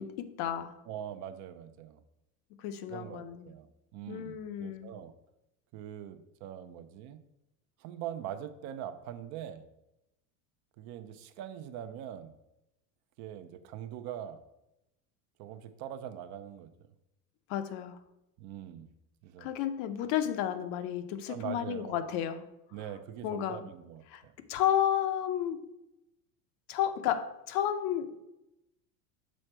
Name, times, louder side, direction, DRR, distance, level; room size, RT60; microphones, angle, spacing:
voice 1, 0.0-0.8 2.6-3.5 4.1-4.9 17.5-18.0 19.4-22.5 23.2-23.6 24.1-24.2 24.5-25.7 26.7-28.2, left 10 dB, 60° left, 0.7 m, -32 dB
voice 2, 0.9-2.0 2.9-5.1 5.7-7.2 7.8-9.6 10.8-12.3 13.2-14.4 15.4-16.7 18.4-18.9 19.2-19.5 21.3-22.0 22.7-24.3, right 10 dB, 50° right, 0.5 m, -42 dB
6.3 x 4.4 x 4.4 m
supercardioid pair, 145°, 39 cm